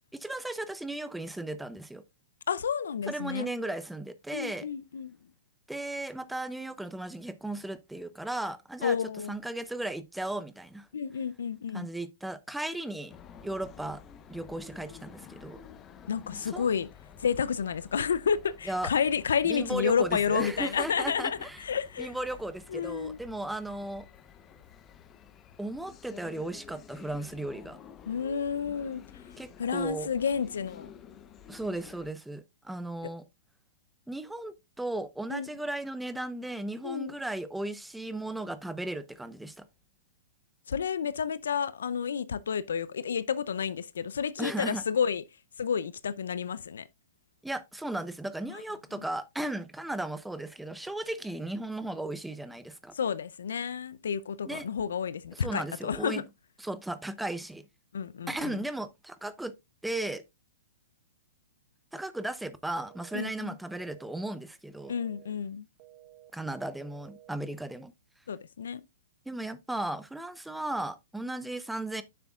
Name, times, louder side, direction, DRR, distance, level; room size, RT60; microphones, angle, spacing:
voice 1, 0.2-2.0 3.1-4.7 5.7-9.0 9.3-10.9 11.7-13.1 13.4-14.0 14.3-15.6 16.4-16.7 18.7-18.9 19.4-21.6 22.0-24.1 25.6-27.8 29.4-30.1 31.5-33.2 34.1-39.6 44.4-44.8 47.4-52.9 54.5-54.6 55.3-56.2 56.6-57.7 58.3-59.5 59.8-60.2 61.9-64.9 66.3-67.9 69.3-72.0, right 1 dB, 5° right, 0.7 m, -36 dB
voice 2, 2.5-3.5 4.3-5.2 8.8-9.3 10.9-11.9 16.1-16.9 17.2-22.1 22.7-23.2 28.1-29.0 29.6-30.9 33.0-33.1 35.3-35.5 36.8-37.1 40.7-45.2 45.6-46.9 48.5-48.6 48.9-49.0 52.9-56.2 57.9-58.6 63.1-63.6 64.9-65.7 68.3-68.8, left 7 dB, 75° left, 0.5 m, -30 dB
sound 1, 13.1-32.1, left 8 dB, 25° left, 0.9 m, -51 dB
sound 2, 62.8-63.3 63.8-64.3 64.8-65.3 65.8-66.3 66.8-67.3, right 15 dB, 45° right, 1.3 m, -54 dB
9.7 x 6.9 x 2.4 m
hypercardioid pair, 120°, 0 cm